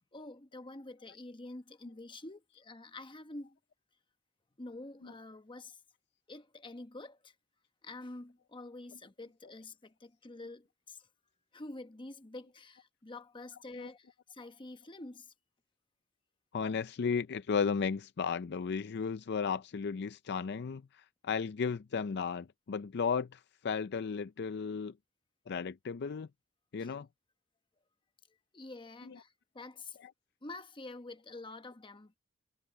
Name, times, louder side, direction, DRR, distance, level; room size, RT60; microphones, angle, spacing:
voice 1, 0.1-3.6 4.6-5.8 6.3-7.3 7.8-11.0 11.5-15.3 26.8-26.9 28.5-30.0 30.4-32.1, left 2 dB, 25° left, 1.0 m, -47 dB
voice 2, 16.5-24.9 25.5-26.3 26.7-27.1 29.0-29.2 30.0-30.1, left 5 dB, 55° left, 0.4 m, -34 dB
head